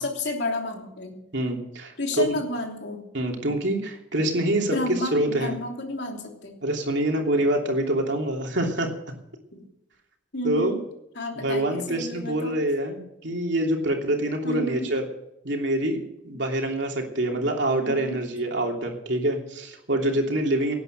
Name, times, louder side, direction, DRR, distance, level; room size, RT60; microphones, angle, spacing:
voice 1, 0.0-1.2 2.0-3.0 4.6-6.5 9.5-9.7 10.3-10.8 11.1-12.6 14.4-14.9 17.8-18.3, left 1 dB, 60° left, 1 dB, 3.2 m, -31 dB
voice 2, 1.3-2.3 3.1-4.8 5.1-5.5 6.6-8.9 10.4-10.7 11.4-15.0 15.4-16.0 16.2-20.7, right 1 dB, 60° right, 1 dB, 3.0 m, -25 dB
18.5 x 9.3 x 6.7 m, 0.83 s
head